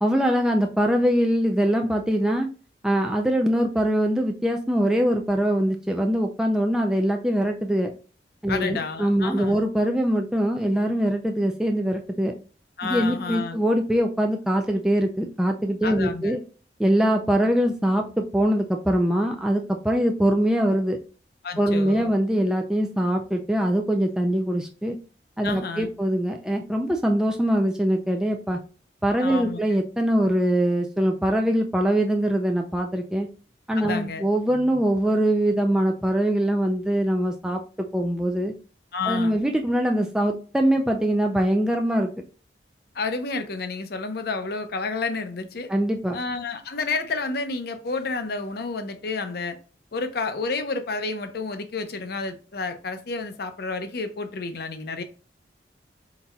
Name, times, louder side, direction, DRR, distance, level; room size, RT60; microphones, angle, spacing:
voice 1, 0.0-2.5 2.8-7.9 8.4-12.3 12.8-16.4 16.8-21.0 21.6-25.0 25.4-28.6 29.0-33.3 33.7-37.6 37.9-38.5 39.0-42.1 45.7-46.2, equal, 5° right, 0.3 m, -23 dB
voice 2, 8.5-9.6 12.8-13.6 15.8-16.4 21.4-22.1 25.4-25.9 29.2-29.6 33.7-34.2 38.9-39.4 42.9-45.7 46.1-49.6 49.9-55.0, left 3 dB, 60° left, 0.6 m, -30 dB
4.0 x 3.9 x 2.2 m
head